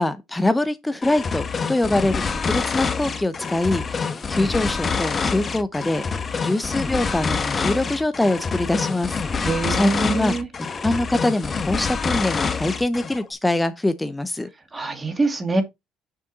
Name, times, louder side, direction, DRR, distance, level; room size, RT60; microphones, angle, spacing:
voice 1, 0.0-6.0 6.4-14.5, left 1 dB, 10° left, 0.7 m, -24 dB
sound 1, 1.0-13.2, left 5 dB, 35° left, 1.1 m, -26 dB
voice 2, 9.4-10.5 14.7-15.6, right 3 dB, 20° right, 2.3 m, -24 dB
6.6 x 5.2 x 4.0 m
supercardioid pair, 90°, 0 cm